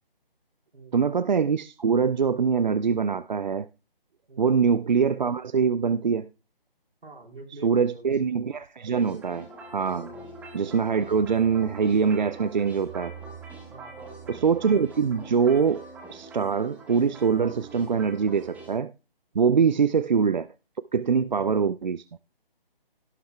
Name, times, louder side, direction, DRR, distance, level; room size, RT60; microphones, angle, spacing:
voice 1, 0.9-3.7 4.4-6.3 7.6-10.1 10.5-13.2 14.3-15.8 16.1-18.9 19.3-20.5 20.9-22.0, right 6 dB, 50° right, 0.4 m, -23 dB
voice 2, 7.0-8.3 10.1-10.3 13.7-14.4 19.6-19.9, right 3 dB, 75° right, 4.1 m, -47 dB
sound 1, 8.9-18.7, right 3 dB, 5° right, 1.4 m, -44 dB
17.0 x 7.4 x 2.3 m
figure-of-eight pair, 155°, 29 cm